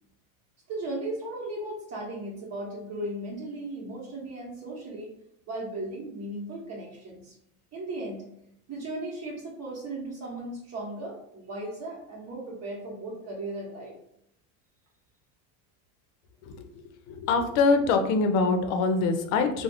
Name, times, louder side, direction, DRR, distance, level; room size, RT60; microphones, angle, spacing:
voice 1, 0.7-5.2 5.5-7.3 7.7-8.3 8.7-13.9, right 1 dB, 40° right, -3 dB, 0.8 m, -36 dB
voice 2, 17.1-19.6, left 4 dB, 90° left, 6 dB, 0.6 m, -24 dB
2.4 x 2.0 x 3.4 m, 0.73 s
supercardioid pair, 110°, 40 cm